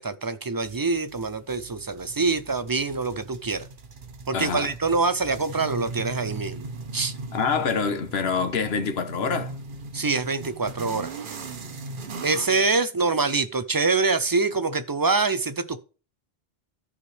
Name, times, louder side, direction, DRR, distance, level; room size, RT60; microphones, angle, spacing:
voice 1, 0.0-3.6 4.3-6.7 6.9-7.1 9.9-11.1 12.2-15.8, right 3 dB, 25° right, 0.5 m, -25 dB
sound 1, 0.6-12.7, right 3 dB, 55° right, 1.1 m, -39 dB
voice 2, 4.3-4.7 7.3-9.5, left 5 dB, 80° left, 1.3 m, -26 dB
14.0 x 4.9 x 3.4 m
omnidirectional pair, 1.0 m